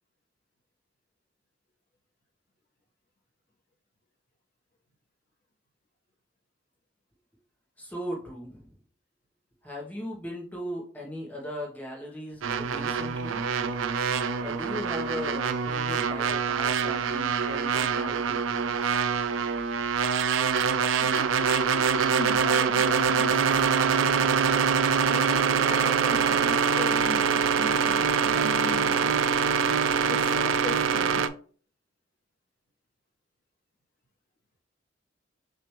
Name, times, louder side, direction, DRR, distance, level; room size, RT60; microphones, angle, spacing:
voice 1, 7.8-8.7 9.6-13.4 14.4-19.0, equal, 10° left, -3 dB, 0.9 m, -38 dB
sound 1, 12.4-31.3, right 6 dB, 85° right, 0.4 m, -25 dB
voice 2, 20.9-23.4 23.7-24.7 25.1-29.2 30.1-31.2, left 2 dB, 50° left, 1 dB, 1.1 m, -38 dB
6.2 x 2.5 x 3.0 m, 0.43 s
head